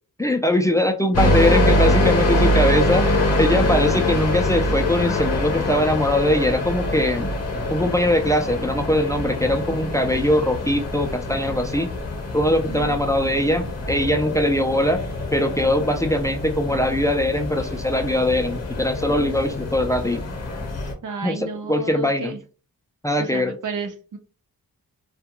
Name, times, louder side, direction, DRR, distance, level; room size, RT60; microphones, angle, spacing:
voice 1, 0.2-7.3 7.7-11.9 12.3-15.0 15.3-20.2 21.2-22.4 23.0-23.6, left 1 dB, 10° left, 5 dB, 0.3 m, -21 dB
sound 1, 1.1-20.9, left 1 dB, 45° left, 0.8 m, -24 dB
voice 2, 12.6-13.7 21.0-22.4 23.2-24.2, right 4 dB, 55° right, 6 dB, 0.6 m, -33 dB
2.3 x 2.3 x 2.8 m, 0.35 s
wide cardioid pair, 100°, 37 cm